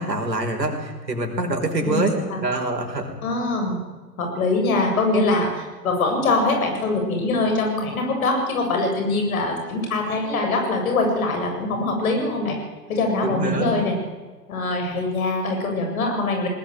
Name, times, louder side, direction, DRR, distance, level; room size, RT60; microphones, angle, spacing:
voice 1, 0.0-2.1 2.4-3.1 13.2-13.8, right 2 dB, 75° right, 4 dB, 5.5 m, -25 dB
voice 2, 1.8-2.4 3.2-3.8 4.2-12.6 12.9-14.0 14.5-16.5, left 2 dB, 55° left, 3 dB, 8.0 m, -23 dB
21.0 x 19.0 x 9.3 m, 1.3 s
figure-of-eight pair, 115°, 50 cm